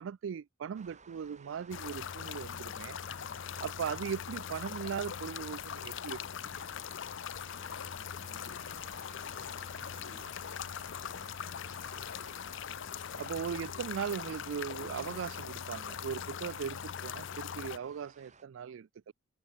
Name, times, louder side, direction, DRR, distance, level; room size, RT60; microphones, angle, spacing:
voice 1, 0.0-3.0 3.6-6.2 6.6-6.7 13.2-19.1, right 7 dB, 70° right, 0.4 m, -38 dB
sound 1, 0.7-18.4, right 4 dB, 35° right, 7.9 m, -58 dB
sound 2, 1.7-17.8, left 8 dB, 65° left, 0.6 m, -41 dB
voice 2, 7.6-12.2, left 1 dB, 40° left, 5.8 m, -63 dB
head